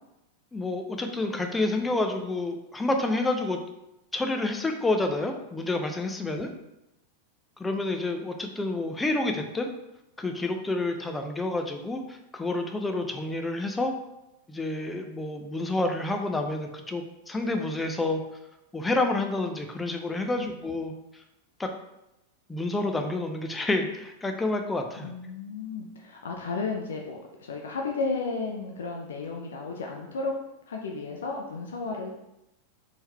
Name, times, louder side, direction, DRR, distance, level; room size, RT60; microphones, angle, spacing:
voice 1, 0.5-3.6 4.1-6.5 7.6-9.7 10.2-13.9 14.5-18.2 18.7-20.9 21.6-21.7 22.5-25.1, left 2 dB, 10° left, 5 dB, 0.6 m, -29 dB
voice 2, 6.2-6.6 20.4-20.5 25.0-30.3 30.7-32.1, left 4 dB, 65° left, 0 dB, 0.6 m, -33 dB
4.4 x 3.4 x 3.4 m, 0.88 s
figure-of-eight pair, 90°, 0 cm